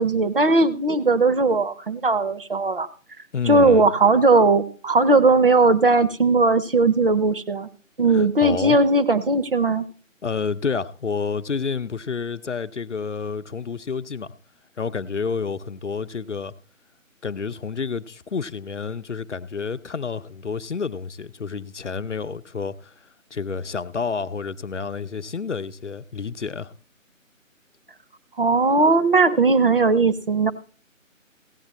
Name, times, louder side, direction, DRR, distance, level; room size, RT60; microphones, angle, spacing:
voice 1, 0.0-2.9 3.5-7.7 8.0-9.8 28.4-30.5, right 3 dB, 40° right, 0.8 m, -18 dB
voice 2, 3.3-3.9 8.1-8.8 10.2-14.3 14.8-16.5 17.2-22.9 23.3-26.7, left 5 dB, 60° left, 0.7 m, -29 dB
16.0 x 8.7 x 4.1 m
figure-of-eight pair, 155°, 41 cm